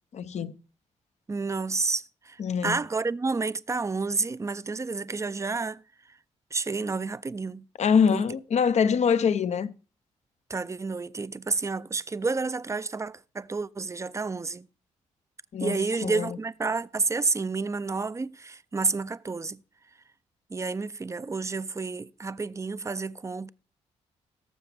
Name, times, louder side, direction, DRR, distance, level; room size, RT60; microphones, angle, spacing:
voice 1, 0.1-0.6 2.4-2.8 7.8-9.7 15.5-16.4, left 6 dB, 60° left, 0.7 m, -24 dB
voice 2, 1.3-5.8 6.5-7.6 8.1-8.2 10.5-14.7 15.6-19.6 20.5-23.5, right 4 dB, 20° right, 0.5 m, -30 dB
18.0 x 7.1 x 3.4 m
supercardioid pair, 60°, 13 cm